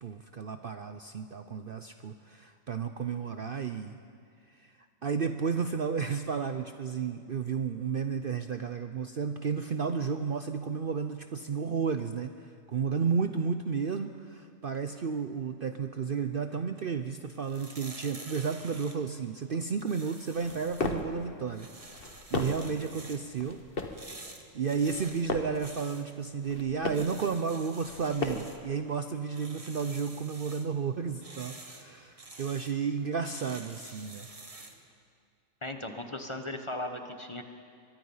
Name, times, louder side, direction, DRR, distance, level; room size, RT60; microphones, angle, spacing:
voice 1, 0.0-4.0 4.5-4.7 5.0-21.7 22.3-23.6 24.1-24.2 24.5-34.3, right 6 dB, 50° right, 8 dB, 0.7 m, -32 dB
sound 1, 17.2-34.9, right 2 dB, 25° right, 1.5 m, -50 dB
sound 2, 20.3-21.2 21.8-22.7 23.4-24.1 24.8-25.6 26.3-27.2 27.8-28.6, left 3 dB, 45° left, 1.6 m, -36 dB
voice 2, 35.6-37.4, left 1 dB, 25° left, 6 dB, 1.2 m, -37 dB
23.5 x 22.0 x 5.6 m, 2.2 s
omnidirectional pair, 1.4 m